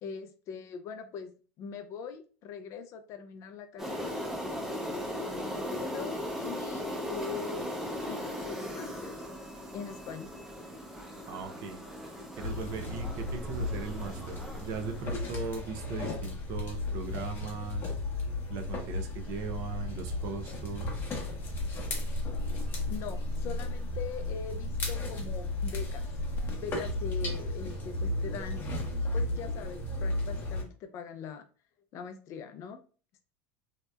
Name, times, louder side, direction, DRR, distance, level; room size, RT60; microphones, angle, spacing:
voice 1, 0.0-4.3 4.8-7.7 8.0-9.2 9.7-10.3 22.9-26.1 26.5-28.7 29.1-31.5 31.9-32.8, left 6 dB, 45° left, 8 dB, 0.4 m, -42 dB
sound 1, 3.8-15.6, equal, 5° right, 0.6 m, -38 dB
voice 2, 11.0-11.8 12.3-18.0 18.5-21.1, right 5 dB, 55° right, 5 dB, 0.5 m, -39 dB
sound 2, 12.4-30.6, left 2 dB, 30° left, 0.8 m, -34 dB
2.7 x 2.1 x 2.2 m, 0.38 s
supercardioid pair, 105°, 7 cm